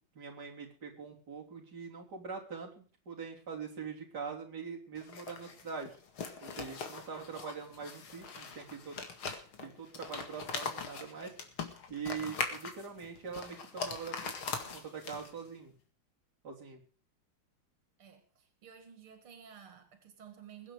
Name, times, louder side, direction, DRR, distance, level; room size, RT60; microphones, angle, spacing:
voice 1, 0.2-6.0 6.4-9.0 9.6-11.3 11.9-15.7 16.4-16.8, right 6 dB, 50° right, 3.7 m, -43 dB
sound 1, 5.0-15.5, left 5 dB, 80° left, 2.8 m, -41 dB
voice 2, 18.0-20.7, right 8 dB, 90° right, 2.8 m, -53 dB
21.5 x 8.4 x 5.0 m
omnidirectional pair, 2.3 m